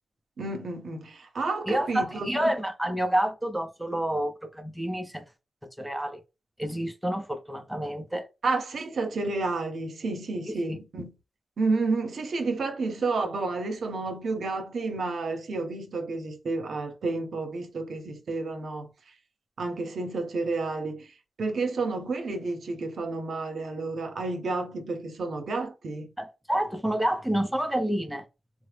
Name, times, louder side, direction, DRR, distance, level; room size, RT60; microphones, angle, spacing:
voice 1, 0.4-2.3 8.4-11.1 11.6-18.9 19.6-21.1 21.4-26.1, right 3 dB, 75° right, 0.7 m, -30 dB
voice 2, 1.7-5.3 5.8-6.2 6.6-8.3 26.2-28.2, right 1 dB, 5° right, 0.5 m, -28 dB
3.8 x 2.0 x 3.2 m
wide cardioid pair, 95°, 0 cm